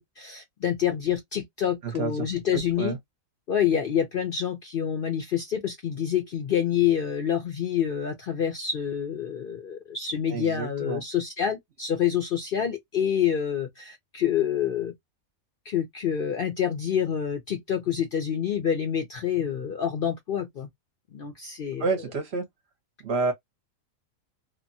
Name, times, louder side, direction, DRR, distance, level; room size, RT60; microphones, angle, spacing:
voice 1, 0.0-3.0 3.5-14.9 15.7-20.7 21.1-21.9, left 9 dB, 55° left, 0.7 m, -27 dB
voice 2, 1.8-2.3 2.5-3.0 10.3-11.0 21.8-22.4 23.0-23.3, right 4 dB, 55° right, 1.0 m, -29 dB
2.9 x 2.1 x 2.6 m
omnidirectional pair, 1.4 m